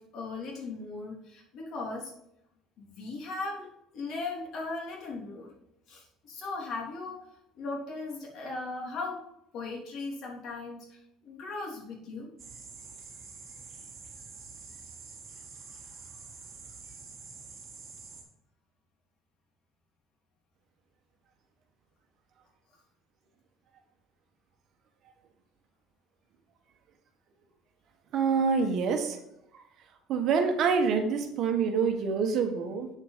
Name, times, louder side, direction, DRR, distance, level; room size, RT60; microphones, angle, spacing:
voice 1, 0.0-2.1 2.8-5.5 5.9-7.3 7.5-9.3 9.5-12.3, left 3 dB, 50° left, 0 dB, 3.3 m, -38 dB
sound 1, 12.4-18.2, right 5 dB, 25° right, 4.2 m, -47 dB
voice 2, 28.1-29.2 30.1-32.9, right 5 dB, 45° right, 5 dB, 1.6 m, -26 dB
8.8 x 7.3 x 5.1 m, 0.80 s
cardioid pair, 145°, 0 cm